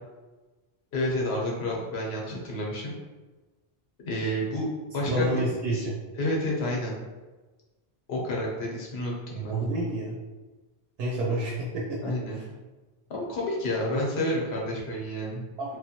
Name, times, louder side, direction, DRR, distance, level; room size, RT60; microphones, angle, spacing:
voice 1, 0.9-3.0 4.0-5.9 6.2-6.9 8.1-9.5 12.0-12.4 13.1-15.4, left 1 dB, 80° left, -3 dB, 1.0 m, -30 dB
voice 2, 5.1-6.0 9.4-10.2 11.0-12.4 15.6-15.8, right 1 dB, 75° right, -3 dB, 0.8 m, -29 dB
3.0 x 2.2 x 2.8 m, 1.2 s
omnidirectional pair, 1.1 m